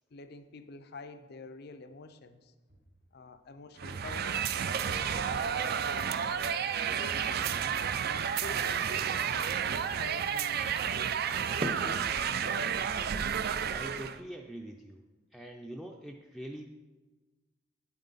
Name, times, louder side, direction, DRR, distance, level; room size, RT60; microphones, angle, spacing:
voice 1, 0.1-2.5 3.1-7.7 8.0-10.6 11.8-12.8, left 3 dB, 60° left, 10 dB, 0.6 m, -49 dB
sound 1, 2.7-7.0, right 1 dB, 80° right, 2.4 m, -57 dB
sound 2, 3.8-14.2, right 8 dB, 55° right, 0.4 m, -31 dB
sound 3, 8.3-13.3, right 1 dB, 30° right, 0.8 m, -44 dB
voice 2, 13.6-15.1 15.3-16.6, right 1 dB, ahead, 1 dB, 0.5 m, -44 dB
8.9 x 8.8 x 4.0 m, 1.3 s
head